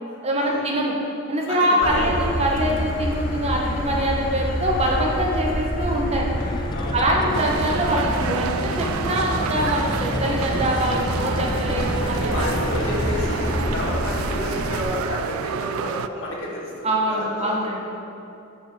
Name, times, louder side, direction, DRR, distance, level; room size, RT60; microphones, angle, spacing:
voice 1, 0.2-0.9 1.3-6.3 6.9-12.5 16.8-17.8, right 1 dB, 30° right, -1 dB, 1.1 m, -24 dB
voice 2, 1.5-2.3 4.8-4.9 6.0-6.2 6.7-7.3 11.1-11.2 12.1-17.6, left 1 dB, 65° left, -4 dB, 2.0 m, -31 dB
Motor vehicle (road), 1.8-14.8, equal, 45° left, 1.1 m, -28 dB
sound 1, 6.3-14.4, left 2 dB, 20° left, 0.3 m, -32 dB
sound 2, 7.3-16.1, right 8 dB, 90° right, 0.3 m, -29 dB
8.5 x 5.3 x 6.6 m, 2.8 s
head